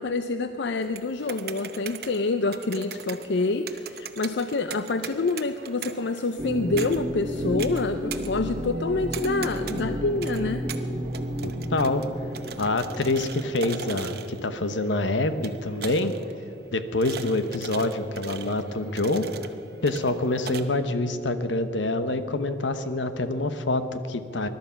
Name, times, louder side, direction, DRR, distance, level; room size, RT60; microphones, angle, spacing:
voice 1, 0.0-10.7, left 3 dB, 70° left, 9 dB, 0.5 m, -27 dB
sound 1, 0.8-20.6, right 6 dB, 55° right, 0.9 m, -41 dB
sound 2, 6.4-14.9, equal, 30° right, 1.4 m, -32 dB
voice 2, 11.4-12.0 12.6-16.1 16.7-19.2 19.8-24.5, left 2 dB, 90° left, 10 dB, 1.0 m, -26 dB
21.0 x 12.0 x 5.8 m, 2.9 s
head